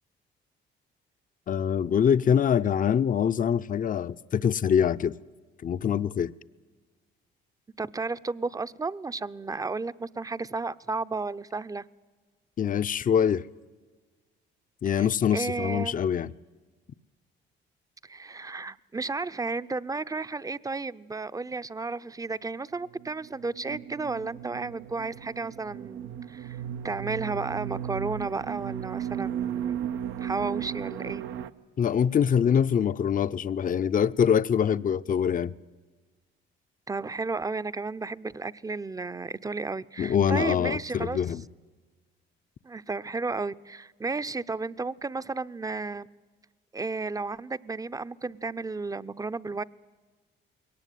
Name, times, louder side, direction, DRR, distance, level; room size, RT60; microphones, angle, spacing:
voice 1, 1.5-5.2 5.6-6.3 12.6-13.5 14.8-16.3 31.8-35.5 40.0-41.4, left 8 dB, 45° left, 0.6 m, -24 dB
voice 2, 7.8-11.9 14.9-16.0 18.0-26.6 26.8-31.2 36.9-41.2 42.6-46.1 46.7-49.6, right 3 dB, 15° right, 0.6 m, -33 dB
sound 1, 23.0-31.5, right 9 dB, 90° right, 0.8 m, -35 dB
22.0 x 18.5 x 9.2 m
cardioid pair, 90°, 20 cm